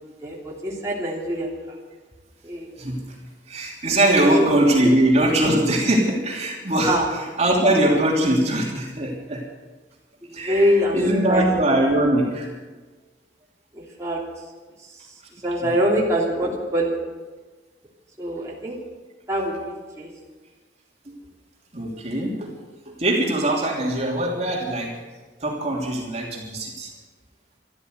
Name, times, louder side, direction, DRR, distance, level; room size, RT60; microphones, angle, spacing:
voice 1, 0.2-1.5 2.4-2.8 4.2-4.5 6.8-7.0 10.4-11.0 11.3-11.4 13.7-14.2 15.4-17.0 18.2-18.8 19.3-20.1, equal, 15° right, -5 dB, 3.0 m, -24 dB
voice 2, 3.5-9.4 10.3-12.5 15.6-15.7 21.1-21.2 21.7-22.5 22.9-24.9 25.4-26.9, right 1 dB, 40° right, -2 dB, 3.0 m, -21 dB
13.0 x 13.0 x 8.0 m, 1.3 s
head